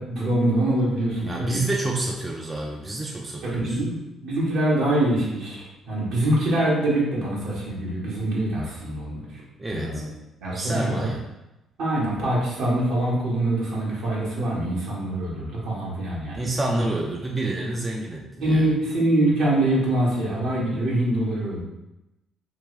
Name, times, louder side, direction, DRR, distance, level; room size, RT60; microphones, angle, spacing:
voice 1, 0.0-1.6 3.4-9.4 9.7-10.1 10.4-11.1 11.8-16.5 16.8-16.9 18.4-21.6, right 1 dB, 70° right, -6 dB, 1.4 m, -24 dB
voice 2, 1.3-3.8 9.6-10.1 10.5-11.2 16.3-18.7, right 2 dB, 25° right, -1 dB, 0.6 m, -28 dB
3.3 x 3.1 x 3.1 m, 0.94 s
hypercardioid pair, 50°, 0 cm